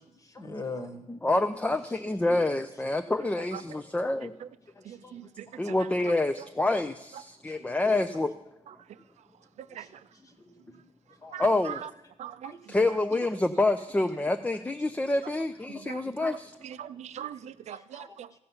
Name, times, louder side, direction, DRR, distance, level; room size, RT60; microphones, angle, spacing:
voice 1, 0.2-1.0 2.8-2.9 4.7-5.1 7.6-7.7 9.7-10.8 11.2-11.4 12.4-12.6 17.2-17.3 17.7-18.2, left 3 dB, 30° left, 1.3 m, -43 dB
voice 2, 1.1-4.3 5.6-8.3 11.4-11.8 12.7-16.5, left 2 dB, 10° left, 0.5 m, -27 dB
voice 3, 4.9-5.6 9.8-9.9 11.3-11.4 12.2-12.5 15.9-16.3 16.8-18.3, right 10 dB, 70° right, 0.4 m, -42 dB
15.0 x 5.4 x 7.1 m
cardioid pair, 120°, 12 cm